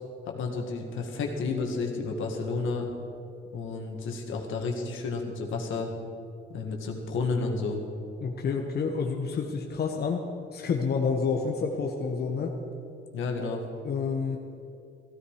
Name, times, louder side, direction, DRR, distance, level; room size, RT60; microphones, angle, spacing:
voice 1, 0.3-2.9 3.5-5.9 6.5-7.8 13.1-13.6, left 4 dB, 80° left, 1 dB, 2.0 m, -31 dB
voice 2, 8.2-10.2 10.5-12.5 13.8-14.4, left 5 dB, 55° left, 1 dB, 1.3 m, -29 dB
15.5 x 14.0 x 5.0 m, 2.6 s
cardioid pair, 90°, 20 cm